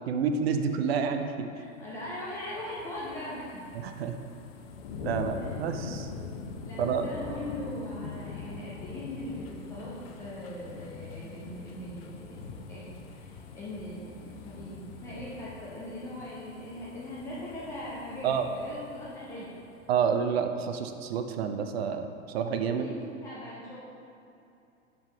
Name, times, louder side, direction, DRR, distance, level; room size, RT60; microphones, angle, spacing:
voice 1, 0.1-1.5 3.7-4.2 5.0-6.1 6.8-7.1 18.2-18.5 19.9-22.9, right 6 dB, 50° right, 7 dB, 0.6 m, -29 dB
voice 2, 1.5-3.7 5.3-5.5 6.6-12.4 12.7-19.5 22.6-23.8, left 1 dB, 10° left, -8 dB, 0.3 m, -40 dB
sound 1, 1.8-19.9 20.3-20.4, left 5 dB, 45° left, 0.7 m, -43 dB
5.8 x 5.5 x 5.1 m, 2.7 s
figure-of-eight pair, 100°, 41 cm